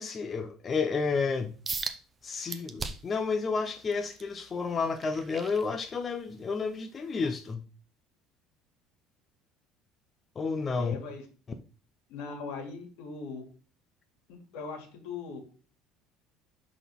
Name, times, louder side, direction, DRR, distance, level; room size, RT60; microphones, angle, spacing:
voice 1, 0.0-1.5 2.2-7.6 10.4-10.9, left 4 dB, 25° left, 7 dB, 0.6 m, -31 dB
sound 1, 1.7-2.0 2.5-3.2 3.7-6.3 6.7-7.0 7.5-7.6, right 4 dB, 15° right, 0.7 m, -38 dB
voice 2, 10.8-11.2 12.1-13.4 14.5-15.4, left 4 dB, 75° left, 4 dB, 2.5 m, -39 dB
11.5 x 4.2 x 3.6 m, 0.38 s
cardioid pair, 160°, 0 cm